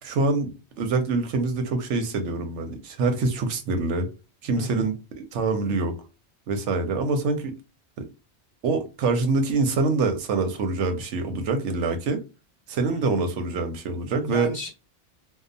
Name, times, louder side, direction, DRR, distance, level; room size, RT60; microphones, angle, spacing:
voice 1, 0.0-4.1 4.4-6.0 6.5-7.6 8.0-8.1 8.6-12.2 12.7-14.5, right 3 dB, 90° right, 1.0 m, -25 dB
voice 2, 4.5-4.9 12.9-13.2 14.2-14.7, left 1 dB, 40° right, 0.4 m, -33 dB
2.7 x 2.1 x 2.5 m
omnidirectional pair, 1.2 m